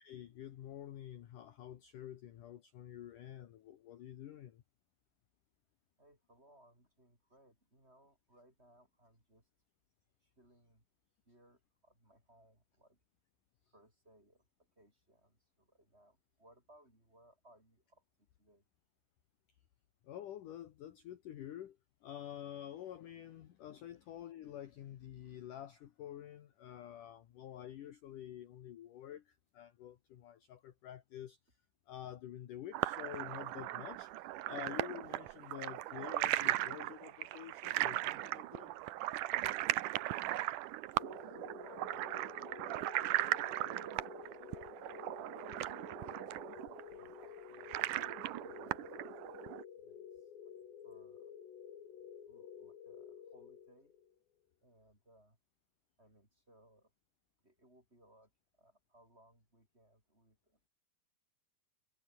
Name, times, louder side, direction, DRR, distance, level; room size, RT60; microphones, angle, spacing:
voice 1, 0.0-4.6 20.0-21.8 22.0-31.4 31.9-34.1 34.5-38.8, left 11 dB, 60° left, 2.5 m, -48 dB
voice 2, 6.0-9.4 10.4-10.8 11.3-13.0 13.7-14.4 14.8-18.0 18.4-18.6 40.9-41.2 41.5-42.2 45.1-46.4 46.9-48.1 48.4-50.1 50.8-51.3 52.3-53.9 54.6-55.4 56.0-56.9 57.4-58.3 58.6-60.7, right 1 dB, 15° right, 6.7 m, -66 dB
sound 1, 32.7-49.6, right 16 dB, 90° right, 1.8 m, -38 dB
sound 2, 41.0-54.1, left 8 dB, 85° left, 5.5 m, -52 dB
omnidirectional pair, 4.9 m